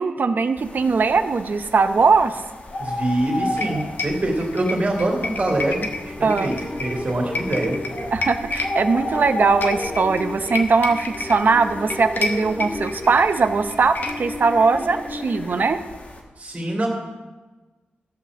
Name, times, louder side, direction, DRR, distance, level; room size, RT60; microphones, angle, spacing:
voice 1, 0.0-2.4 6.2-6.6 8.1-15.8, right 4 dB, 55° right, 9 dB, 0.7 m, -20 dB
sound 1, 0.6-16.2, left 1 dB, 40° left, 1.9 m, -35 dB
voice 2, 2.8-6.5 6.8-7.8 16.4-16.9, right 1 dB, 35° right, -1 dB, 2.8 m, -24 dB
sound 2, 3.6-14.4, left 3 dB, 60° left, 1.2 m, -32 dB
sound 3, 5.8-15.7, left 1 dB, 25° left, 2.2 m, -34 dB
13.5 x 5.7 x 7.2 m, 1.2 s
wide cardioid pair, 95°, 4 cm